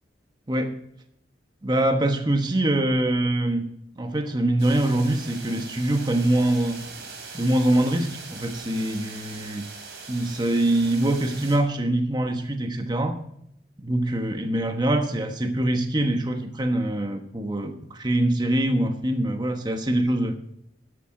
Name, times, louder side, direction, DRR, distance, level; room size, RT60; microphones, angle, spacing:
voice 1, 1.6-3.7 4.0-6.8 7.3-9.7 10.1-13.2 13.8-20.3, right 1 dB, 25° right, 5 dB, 1.2 m, -24 dB
sound 1, 4.6-11.6, right 4 dB, 65° right, 3.5 m, -41 dB
13.5 x 11.0 x 3.8 m, 0.73 s
head